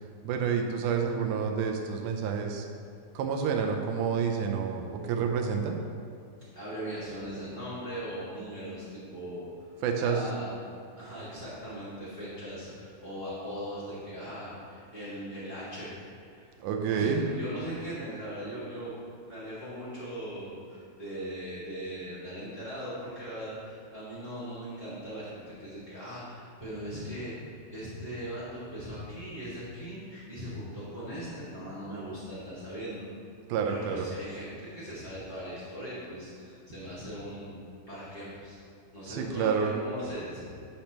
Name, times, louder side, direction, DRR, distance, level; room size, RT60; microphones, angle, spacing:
voice 1, 0.2-2.7 3.2-5.8 9.8-10.2 16.6-17.2 33.5-34.1 39.1-39.7, right 6 dB, 85° right, 3 dB, 1.8 m, -29 dB
voice 2, 6.5-9.7 10.0-10.5 10.9-15.9 16.3-16.5 16.9-18.9 19.2-33.1 33.6-38.6 38.9-40.4, equal, 25° left, -13 dB, 0.9 m, -39 dB
10.0 x 6.6 x 3.0 m, 2.3 s
omnidirectional pair, 4.2 m